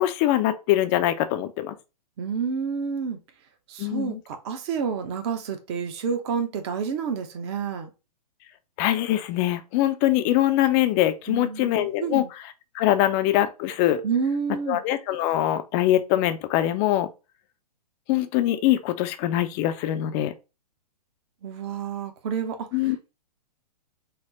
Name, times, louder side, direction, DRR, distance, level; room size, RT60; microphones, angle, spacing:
voice 1, 0.0-1.7 3.8-4.2 8.8-12.2 12.7-14.0 14.7-17.1 18.1-20.3 22.7-23.0, left 13 dB, 25° left, 0.4 m, -23 dB
voice 2, 2.2-3.2 3.7-7.9 11.3-12.3 14.0-14.8 21.4-23.1, right 6 dB, 40° right, 0.7 m, -29 dB
4.3 x 2.0 x 3.9 m
figure-of-eight pair, 120°, 21 cm